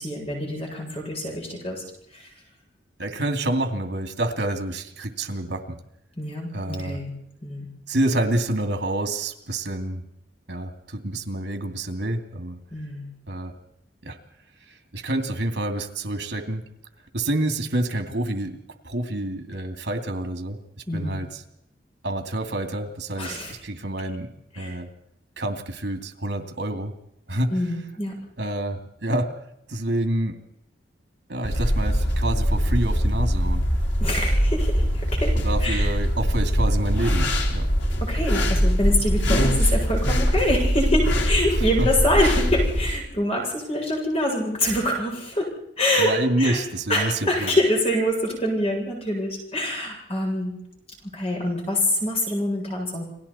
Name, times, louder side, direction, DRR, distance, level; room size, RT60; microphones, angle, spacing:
voice 1, 0.0-1.8 2.1-2.3 6.2-7.1 7.4-7.7 12.7-13.1 20.9-21.2 23.2-23.5 24.5-24.7 27.5-28.1 34.0-35.3 35.6-35.9 38.0-45.5 45.8-46.6 46.9-50.5 51.0-53.1, left 1 dB, 35° left, 0 dB, 7.5 m, -25 dB
voice 2, 3.0-5.8 6.5-7.0 7.9-10.0 10.5-12.6 13.3-13.5 14.0-14.2 14.7-16.6 17.1-20.6 20.9-21.4 22.0-24.3 24.6-24.9 25.4-26.9 27.3-27.5 28.4-29.3 29.7-30.4 31.3-33.6 35.4-37.7 41.8-41.9 46.0-47.5, right 1 dB, 65° right, 6 dB, 2.6 m, -28 dB
sound 1, 31.4-42.9, equal, 90° left, 3.9 m, -22 dB
30.0 x 20.5 x 4.3 m, 0.77 s
head